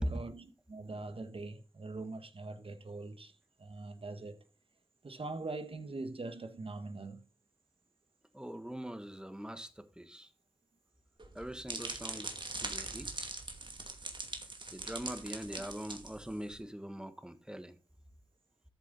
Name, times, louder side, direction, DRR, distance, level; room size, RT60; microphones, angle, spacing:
voice 1, 0.0-3.3 3.6-4.4 5.0-7.3, right 3 dB, 70° right, 1.4 m, -43 dB
voice 2, 8.3-10.3 11.3-12.3 12.6-13.3 14.7-17.8, equal, 10° right, 1.5 m, -42 dB
sound 1, 11.2-16.6, right 2 dB, 55° right, 2.4 m, -42 dB
13.5 x 7.4 x 4.1 m
wide cardioid pair, 55°, 10 cm